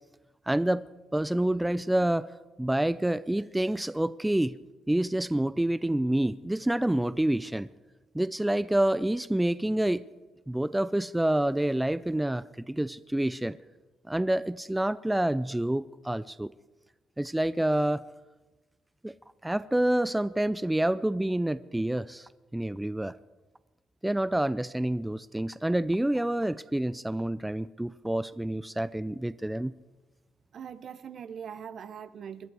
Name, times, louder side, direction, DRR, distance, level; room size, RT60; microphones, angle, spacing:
voice 1, 0.5-0.8 1.1-2.3 2.6-4.5 4.9-7.7 8.1-10.0 10.5-13.6 14.1-16.5 17.2-18.0 19.0-19.1 19.4-23.2 24.0-29.7, right 1 dB, 10° right, 16 dB, 0.4 m, -28 dB
voice 2, 30.5-32.5, right 7 dB, 60° right, 14 dB, 0.8 m, -41 dB
21.5 x 12.0 x 4.8 m, 1.1 s
cardioid pair, 90°, 0 cm